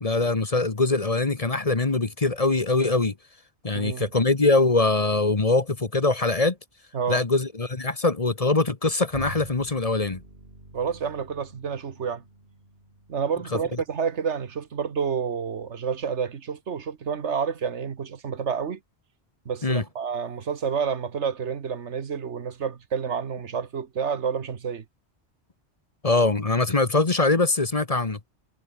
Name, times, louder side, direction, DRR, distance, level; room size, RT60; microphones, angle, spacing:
voice 1, 0.0-3.1 3.6-6.6 7.1-10.2 19.6-19.8 26.0-28.2, left 3 dB, 35° left, 1.4 m, -23 dB
voice 2, 3.7-4.0 6.9-7.2 10.7-12.2 13.1-18.8 19.4-24.8, right 6 dB, 85° right, 1.6 m, -29 dB
Bowed string instrument, 9.1-14.8, right 1 dB, 60° right, 6.9 m, -46 dB
omnidirectional pair, 1.2 m